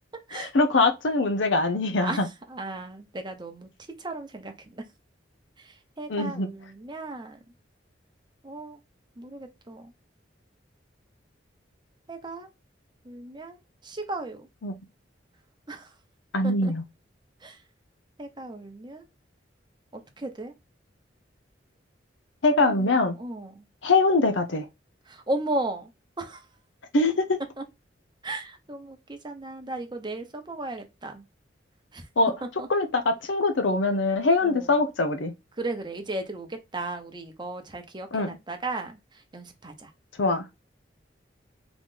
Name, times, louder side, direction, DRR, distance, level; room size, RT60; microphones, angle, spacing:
voice 1, 0.3-2.3 6.1-6.5 14.6-14.7 16.3-16.8 22.4-23.2 23.8-24.7 26.9-27.4 32.2-32.3 32.7-35.3 38.1-38.3 40.2-40.4, left 3 dB, 90° left, 0.7 m, -23 dB
voice 2, 2.0-3.7 4.0-4.8 5.6-7.4 8.4-8.8 9.2-9.9 12.1-12.5 13.0-14.5 15.7-15.9 16.4-16.7 17.4-17.6 18.2-19.0 19.9-20.5 22.6-22.9 23.1-23.6 25.1-25.9 26.2-26.4 27.6-27.7 28.2-31.2 31.9-32.1 32.6-32.7 34.4-34.8 35.6-39.9, right 2 dB, 25° right, 0.9 m, -35 dB
3.9 x 3.1 x 3.8 m
head